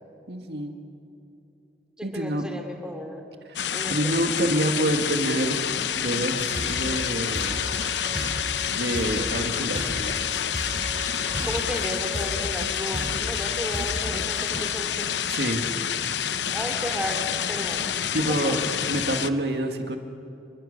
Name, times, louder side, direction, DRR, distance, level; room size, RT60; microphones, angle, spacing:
voice 1, 0.3-0.7 2.0-2.5 3.5-5.6 6.0-7.6 8.2-8.4 8.7-10.2 15.3-15.6 18.1-18.6 18.9-20.0, right 1 dB, 70° right, 4 dB, 2.2 m, -27 dB
voice 2, 2.0-3.2 3.7-4.2 11.4-15.3 16.5-18.0 18.3-18.6, equal, 5° right, 3 dB, 2.9 m, -34 dB
sound 1, 3.6-19.3, left 9 dB, 90° left, 0.8 m, -28 dB
sound 2, 6.2-14.6, equal, 30° right, 7.8 m, -35 dB
28.0 x 23.5 x 6.8 m, 2.6 s
head